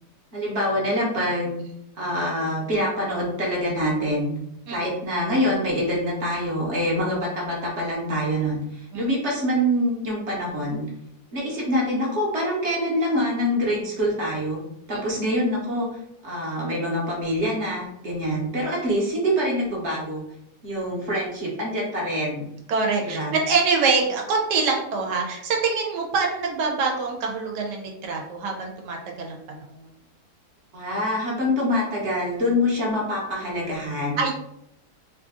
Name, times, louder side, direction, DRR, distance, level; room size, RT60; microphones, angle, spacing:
voice 1, 0.3-1.6 2.0-4.3 4.7-10.8 11.3-14.6 14.9-16.0 16.2-20.2 20.6-22.5 23.0-23.3 30.7-34.2, equal, 50° right, -3 dB, 1.1 m, -25 dB
voice 2, 22.7-29.6 34.2-34.3, right 4 dB, 85° right, 1 dB, 1.3 m, -25 dB
3.2 x 2.5 x 3.6 m, 0.79 s
omnidirectional pair, 1.8 m